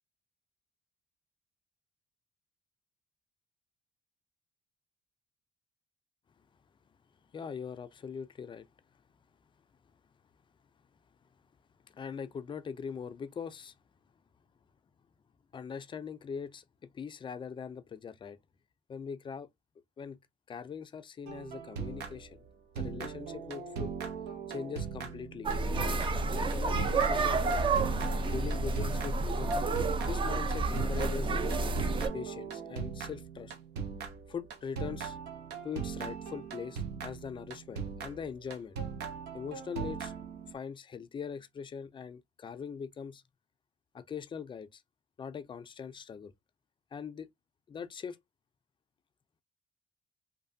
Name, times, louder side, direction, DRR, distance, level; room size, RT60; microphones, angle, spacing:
voice 1, 7.3-8.7 11.9-13.8 15.5-18.4 18.9-19.5 20.0-20.2 20.5-22.4 22.7-23.9 24.5-27.6 28.3-29.6 30.0-33.5 34.3-35.2 35.6-38.8 39.3-40.1 40.5-43.2 43.9-44.8 45.2-46.3 46.9-47.3 47.7-48.2, left 6 dB, 30° left, 0.4 m, -41 dB
sound 1, 21.3-22.5 22.8-40.5, right 6 dB, 75° right, 0.7 m, -40 dB
sound 2, 25.4-32.1, right 3 dB, 30° right, 0.5 m, -30 dB
3.2 x 2.2 x 2.6 m
cardioid pair, 110°, 17 cm